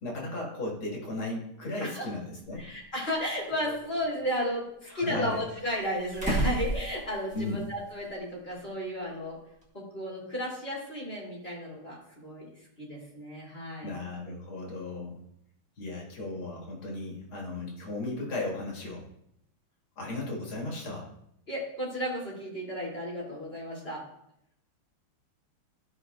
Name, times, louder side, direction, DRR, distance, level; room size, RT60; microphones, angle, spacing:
voice 1, 0.0-2.7 4.9-5.4 7.3-7.6 13.8-15.2 15.8-19.0 20.0-21.1, left 2 dB, 85° left, -2 dB, 2.8 m, -35 dB
voice 2, 2.5-9.4 9.7-14.0 21.5-24.0, equal, 30° left, -5 dB, 3.0 m, -34 dB
sound 1, 2.5-2.6 3.5-4.4 5.3-7.6 7.9-8.0 9.6-9.7, right 2 dB, 5° right, 1.4 m, -33 dB
13.0 x 5.3 x 2.4 m, 0.76 s
omnidirectional pair, 2.3 m